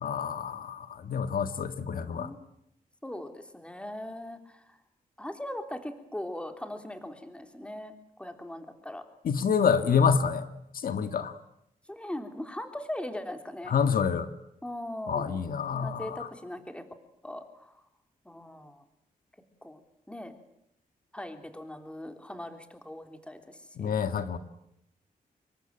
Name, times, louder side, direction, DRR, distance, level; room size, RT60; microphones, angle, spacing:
voice 1, 0.0-2.3 9.2-10.5 10.8-11.4 13.7-14.3 15.1-16.3 23.8-24.4, left 6 dB, 75° left, 9 dB, 1.8 m, -27 dB
voice 2, 3.0-4.6 5.2-7.9 8.2-9.0 11.9-13.7 14.6-15.4 15.7-16.8 17.2-17.7 18.2-18.8 19.6-19.8 20.1-20.3 21.1-23.9, left 1 dB, 5° left, 6 dB, 3.4 m, -40 dB
26.5 x 23.0 x 9.1 m, 0.78 s
wide cardioid pair, 110°, 15 cm